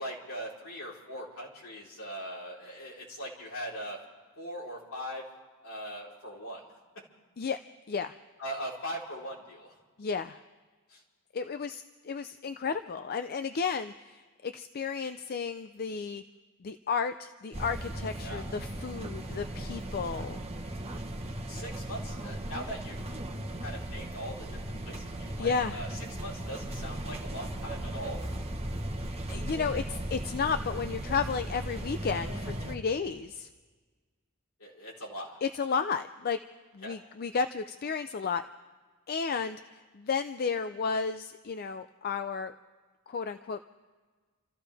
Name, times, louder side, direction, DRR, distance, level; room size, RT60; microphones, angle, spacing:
voice 1, 0.0-4.0 4.4-5.2 5.6-6.6 8.4-9.8 10.9-11.0 18.2-18.5 21.5-23.1 23.6-24.6 24.9-25.9 26.2-28.2 34.6-35.4 36.8-37.0, equal, 70° left, -4 dB, 4.1 m, -40 dB
voice 2, 10.0-10.4 11.3-16.2 16.6-20.4 25.4-25.8 29.3-33.5 35.4-36.4 36.7-38.4 39.1-42.5 43.1-43.6, left 5 dB, 45° left, 10 dB, 0.4 m, -33 dB
sound 1, 17.5-32.8, right 1 dB, 30° right, 1.3 m, -37 dB
29.0 x 14.5 x 3.4 m, 1.4 s
head